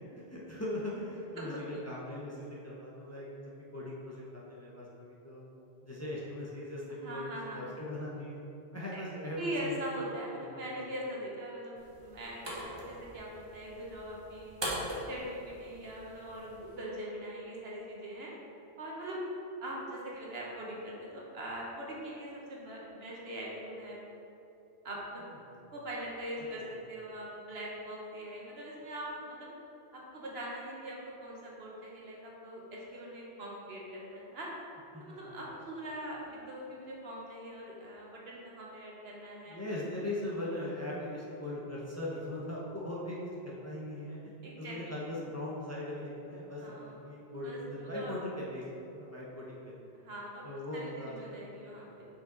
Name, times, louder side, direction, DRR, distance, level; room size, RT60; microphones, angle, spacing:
voice 1, 0.1-3.3 3.7-5.4 5.8-7.2 7.5-8.4 8.7-9.8 10.3-10.7 25.4-25.6 26.6-26.7 34.9-35.6 39.5-48.6 48.9-49.7 50.4-51.5 51.7-51.9, left 1 dB, 15° left, -6 dB, 0.8 m, -40 dB
voice 2, 6.9-7.7 8.9-14.6 15.1-18.3 18.8-19.2 19.6-24.0 24.8-25.2 25.7-29.5 29.9-34.5 35.0-39.6 44.4-45.0 46.6-47.0 47.4-48.1 49.9-50.4 50.7-52.1, right 1 dB, 70° right, -3 dB, 1.3 m, -42 dB
sound 1, 11.8-16.8, equal, 25° right, 1.1 m, -42 dB
5.7 x 5.3 x 3.8 m, 2.9 s
omnidirectional pair, 1.1 m